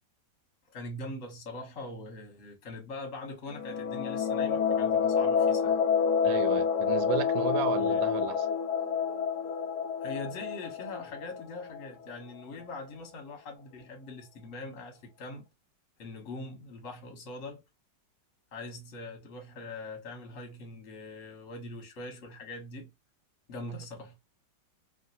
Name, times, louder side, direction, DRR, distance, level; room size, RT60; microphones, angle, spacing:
voice 1, 0.7-5.8 7.8-8.2 10.0-15.4 16.0-17.6 18.5-22.9 23.5-24.1, left 2 dB, 50° left, 1.1 m, -42 dB
sound 1, 3.5-12.1, left 6 dB, 70° left, 1.1 m, -28 dB
voice 2, 6.2-8.4, right 7 dB, 90° right, 1.3 m, -33 dB
2.9 x 2.7 x 2.6 m
omnidirectional pair, 2.0 m